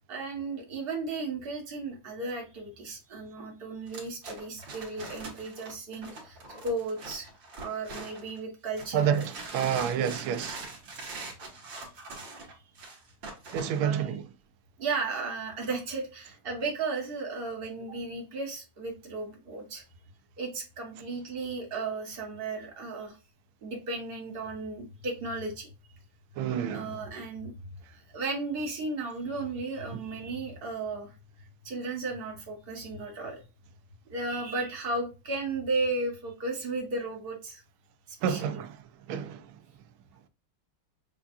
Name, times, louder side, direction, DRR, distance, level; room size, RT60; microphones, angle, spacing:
voice 1, 0.1-7.3 7.6-9.3 12.1-12.6 13.8-14.2 14.8-19.8 20.4-23.2 23.6-25.7 26.6-27.5 27.9-31.1 31.6-33.4 34.1-37.6 38.1-38.6, right 3 dB, 35° right, 1.0 m, -35 dB
sound 1, 3.9-8.4 8.8-13.8, right 3 dB, 60° right, 2.1 m, -43 dB
voice 2, 8.9-10.6 13.5-14.2 26.4-26.9 38.2-38.7 39.1-39.4, right 8 dB, 75° right, 1.3 m, -28 dB
6.9 x 2.3 x 2.5 m
omnidirectional pair, 2.4 m